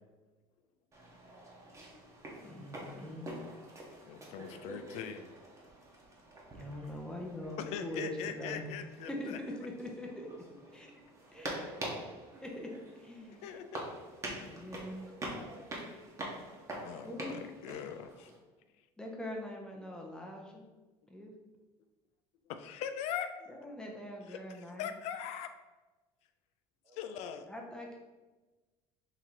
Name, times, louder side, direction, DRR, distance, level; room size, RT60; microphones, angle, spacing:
sound 1, 0.9-18.4, right 1 dB, 25° right, 1.0 m, -46 dB
voice 1, 2.4-3.3 6.5-8.7 9.1-10.3 10.7-11.0 11.3-11.6 12.4-12.7 13.0-13.4 14.2-15.0 17.1-17.3 19.0-20.6 21.1-21.3 23.5-24.9 27.5-28.0, left 1 dB, 5° left, 0 dB, 0.6 m, -42 dB
voice 2, 4.1-5.3 7.6-9.4 13.4-13.8 16.8-18.3 22.5-23.3 24.3-24.4 24.8-25.5 27.0-27.5, left 8 dB, 70° left, 9 dB, 0.4 m, -41 dB
voice 3, 11.3-12.2 14.8-15.6 26.8-27.5, right 1 dB, 45° right, -1 dB, 1.2 m, -53 dB
3.8 x 2.9 x 4.4 m, 1.2 s
cardioid pair, 130°, 12 cm